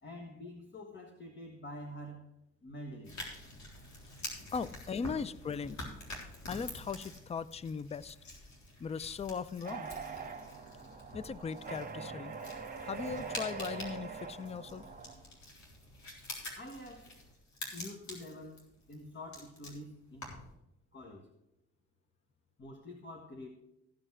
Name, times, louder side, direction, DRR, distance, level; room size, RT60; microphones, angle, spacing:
voice 1, 0.0-2.3 2.6-3.2 16.5-17.2 17.7-20.3 20.9-21.3 22.6-23.5, left 1 dB, 40° left, 1.6 m, -47 dB
sound 1, 3.0-20.6, left 1 dB, 70° left, 3.8 m, -47 dB
voice 2, 4.5-5.9 6.5-8.2 8.8-9.9 11.1-12.3 12.8-14.8, left 5 dB, 20° left, 0.4 m, -38 dB
sound 2, 9.6-15.2, right 5 dB, 30° right, 1.6 m, -43 dB
15.0 x 5.5 x 6.1 m
cardioid pair, 90°, 30 cm